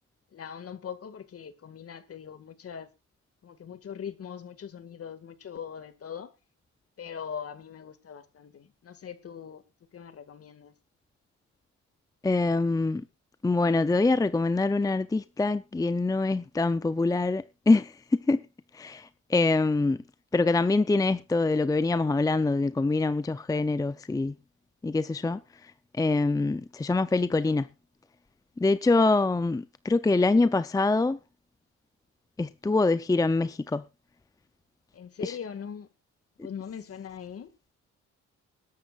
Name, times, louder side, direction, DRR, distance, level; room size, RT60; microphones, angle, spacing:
voice 1, 0.3-2.9 3.4-6.3 7.0-9.6 9.9-10.7 34.9-35.9 36.4-37.5, left 7 dB, 50° left, 2.0 m, -41 dB
voice 2, 12.2-13.0 13.4-18.4 18.7-20.0 20.3-24.3 24.8-25.4 26.0-27.7 28.6-31.2 32.4-33.8 35.2-35.4, left 3 dB, 10° left, 0.6 m, -24 dB
21.0 x 11.5 x 2.4 m
cardioid pair, 90°, 30 cm